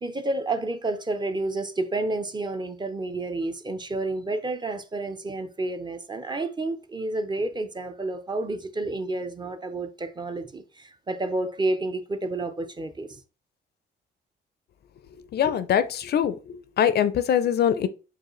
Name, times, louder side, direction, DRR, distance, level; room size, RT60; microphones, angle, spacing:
voice 1, 0.0-13.2, right 2 dB, 20° right, 0.5 m, -30 dB
voice 2, 15.3-17.9, left 9 dB, 55° left, 0.4 m, -23 dB
4.7 x 2.4 x 3.0 m
cardioid pair, 90°, 20 cm